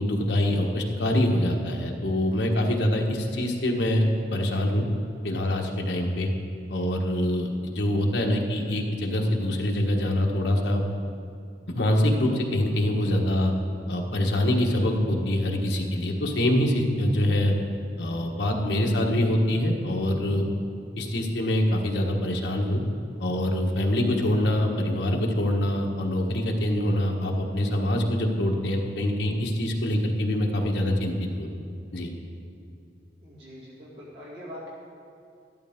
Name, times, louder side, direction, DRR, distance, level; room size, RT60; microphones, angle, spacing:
voice 1, 0.0-4.9 5.2-6.3 6.7-10.8 11.7-13.5 13.9-17.5 18.0-20.4 21.0-22.8 23.2-31.5 31.9-32.1, left 1 dB, 75° left, 1 dB, 1.3 m, -25 dB
voice 2, 33.2-34.7, equal, 65° right, -7 dB, 2.3 m, -42 dB
13.0 x 11.5 x 3.6 m, 2.4 s
head